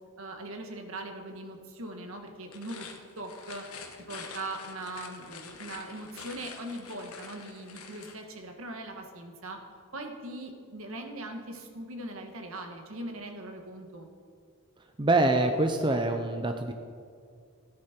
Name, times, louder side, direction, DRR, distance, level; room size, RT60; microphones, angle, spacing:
voice 1, 0.2-2.9 3.2-3.6 4.1-9.6 9.9-14.1, right 1 dB, 70° right, 4 dB, 1.6 m, -40 dB
sound 1, 2.4-8.2, left 5 dB, 80° left, 1.4 m, -46 dB
voice 2, 15.0-16.7, right 2 dB, 20° right, 5 dB, 0.6 m, -25 dB
16.0 x 9.7 x 4.5 m, 2.3 s
head